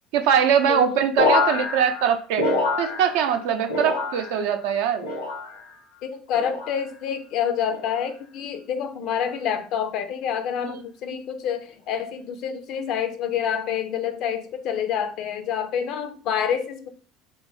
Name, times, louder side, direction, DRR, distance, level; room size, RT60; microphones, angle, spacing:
voice 1, 0.1-5.1, right 8 dB, 70° right, 0.4 m, -22 dB
voice 2, 0.7-1.1 6.0-16.9, left 8 dB, 60° left, 0.3 m, -27 dB
sound 1, 1.2-3.4 3.7-4.5 5.0-5.7 6.3-6.8 7.7-8.1 9.0-9.3, left 2 dB, 90° left, 0.9 m, -26 dB
2.3 x 2.0 x 3.8 m
hypercardioid pair, 65°, 0 cm